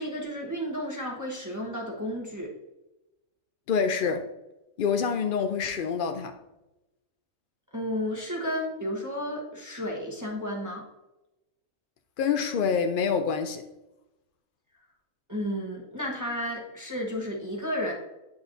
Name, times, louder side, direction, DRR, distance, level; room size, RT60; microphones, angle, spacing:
voice 1, 0.0-2.5 7.7-10.8 15.3-17.9, equal, 15° right, 1.2 m, -32 dB
voice 2, 3.7-4.3 4.8-6.4 12.2-13.6, left 6 dB, 70° left, 0.5 m, -26 dB
9.0 x 6.9 x 2.6 m
omnidirectional pair, 1.5 m